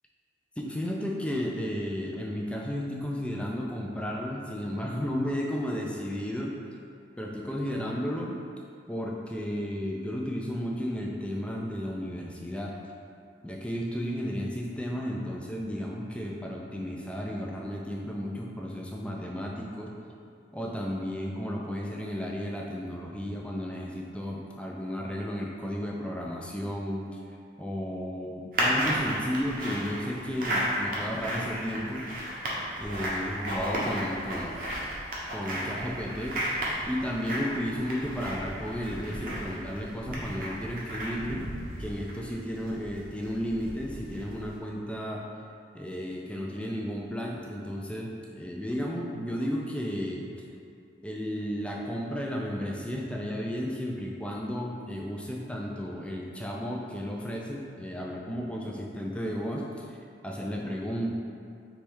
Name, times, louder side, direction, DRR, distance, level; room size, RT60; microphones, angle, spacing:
voice 1, 0.6-6.6 7.2-8.4 8.9-12.8 13.4-19.9 20.5-27.1 27.6-32.0 32.8-34.6 35.3-36.4 36.9-41.4 41.8-45.2 45.7-50.3 51.0-60.0 60.2-61.1, equal, 5° left, -2 dB, 0.3 m, -33 dB
sound 1, 28.5-44.6, equal, 50° right, 0.8 m, -33 dB
3.4 x 3.1 x 4.5 m, 2.4 s
head